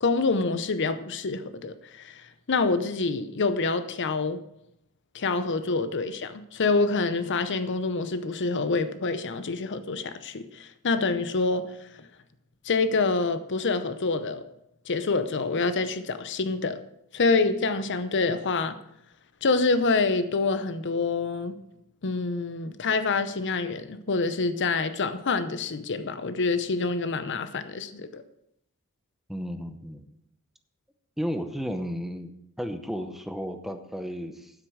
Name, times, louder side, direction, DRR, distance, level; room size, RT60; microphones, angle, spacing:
voice 1, 0.0-4.4 5.1-11.7 12.6-14.4 14.9-16.8 17.1-18.8 19.4-21.6 22.0-28.2, left 3 dB, 55° left, 0.8 m, -26 dB
voice 2, 29.3-30.0 31.2-32.3 32.6-34.5, equal, ahead, 0.7 m, -33 dB
9.6 x 8.0 x 6.3 m
head